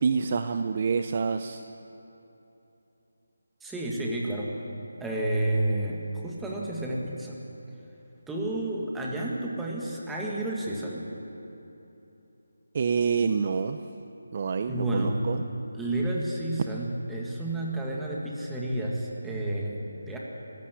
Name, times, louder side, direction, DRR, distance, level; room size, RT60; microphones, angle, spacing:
voice 1, 0.0-1.6 12.7-13.8 14.3-15.4, right 5 dB, 30° right, 9 dB, 0.6 m, -27 dB
voice 2, 3.6-4.6 5.0-7.4 8.3-11.1 14.7-15.2 15.7-20.2, right 1 dB, 5° right, -3 dB, 2.0 m, -30 dB
24.0 x 15.5 x 9.9 m, 3.0 s
figure-of-eight pair, 170°, 0 cm